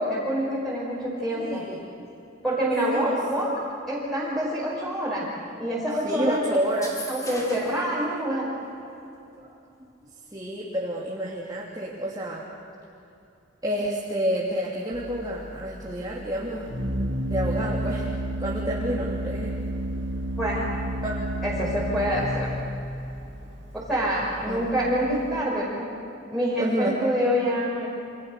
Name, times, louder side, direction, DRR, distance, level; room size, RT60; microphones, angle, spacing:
voice 1, 0.0-1.6 2.4-3.5 3.9-5.3 5.6-6.4 7.1-8.5 20.4-20.6 21.4-22.5 23.7-25.9 26.3-27.9, equal, ahead, -8 dB, 5.6 m, -26 dB
voice 2, 1.2-2.1 2.9-3.2 6.0-7.1 9.3-9.5 10.3-12.5 13.6-16.7 17.3-18.1 18.4-19.5 21.0-21.2 24.5-24.7 26.6-27.1, equal, 20° right, -5 dB, 3.0 m, -29 dB
sound 1, 6.7-7.9, left 1 dB, 15° left, 3.6 m, -38 dB
Organ, 14.9-25.4, right 1 dB, 60° right, 2.4 m, -31 dB
29.5 x 27.0 x 6.8 m, 2.8 s
head